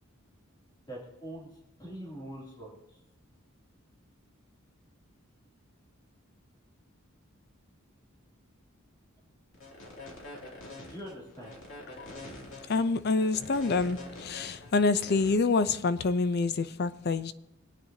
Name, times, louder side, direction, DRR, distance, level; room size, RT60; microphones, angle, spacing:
voice 1, 0.9-1.5 1.8-3.0 10.9-11.6, right 1 dB, 20° left, 2.9 m, -43 dB
sound 1, 9.5-15.3, left 2 dB, 70° left, 2.8 m, -45 dB
voice 2, 12.7-17.3, left 3 dB, 50° left, 0.6 m, -27 dB
24.0 x 9.0 x 2.8 m
head